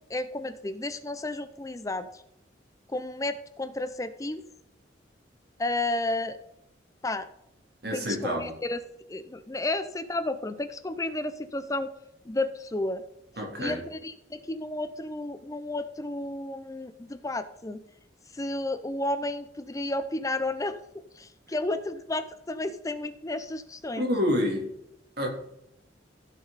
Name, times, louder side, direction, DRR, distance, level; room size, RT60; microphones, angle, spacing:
voice 1, 0.1-2.2 2.9-4.4 5.6-6.4 7.0-7.3 7.9-8.8 9.1-11.9 12.3-13.0 13.6-17.8 18.3-20.8 21.2-24.1, left 2 dB, 20° left, 12 dB, 0.6 m, -32 dB
voice 2, 7.8-8.6 13.4-13.8 24.0-24.7 25.2-25.3, equal, 55° right, 1 dB, 3.2 m, -28 dB
15.5 x 6.4 x 4.1 m, 0.81 s
head